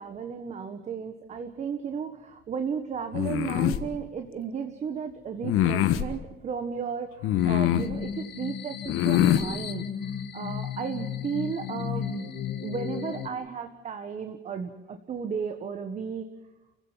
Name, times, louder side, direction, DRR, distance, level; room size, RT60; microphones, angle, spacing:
voice 1, 0.0-12.3 12.6-16.3, right 6 dB, 35° right, 7 dB, 1.5 m, -34 dB
sound 1, 3.1-3.8 5.4-6.1 7.2-7.9 8.9-9.5, left 12 dB, 85° left, 1.5 m, -23 dB
sound 2, 7.4-13.3, left 9 dB, 55° left, 2.0 m, -35 dB
29.0 x 16.0 x 7.4 m, 1.1 s
cardioid pair, 175°, 21 cm